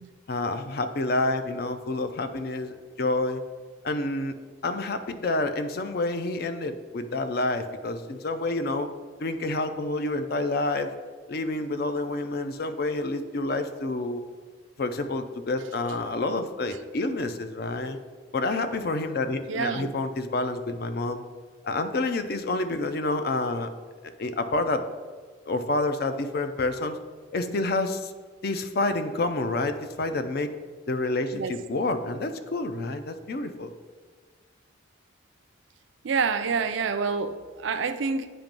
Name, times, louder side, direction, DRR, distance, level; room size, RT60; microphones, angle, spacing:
voice 1, 0.3-3.4 3.8-4.4 4.6-8.9 9.2-10.9 11.3-14.2 14.8-18.0 18.3-21.2 21.6-23.7 24.0-24.8 25.5-27.0 27.3-28.1 28.4-30.5 30.9-33.7, left 2 dB, 50° left, 9 dB, 0.4 m, -28 dB
voice 2, 19.5-19.9 31.3-31.5 36.0-38.3, right 5 dB, 70° right, 9 dB, 0.4 m, -27 dB
8.7 x 3.0 x 5.2 m, 1.5 s
head